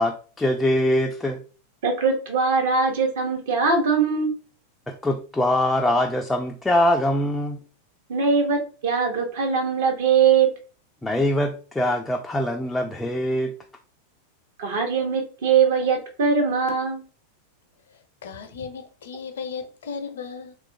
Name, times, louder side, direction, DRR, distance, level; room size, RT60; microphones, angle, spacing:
voice 1, 0.0-1.4 4.9-7.6 11.0-13.5, left 1 dB, 10° left, 0.3 m, -23 dB
voice 2, 1.8-4.3 8.1-10.5 14.6-17.0, right 5 dB, 55° right, 0.8 m, -21 dB
voice 3, 17.9-20.5, left 5 dB, 60° left, 0.5 m, -36 dB
2.9 x 2.3 x 2.5 m
figure-of-eight pair, 90°, 0 cm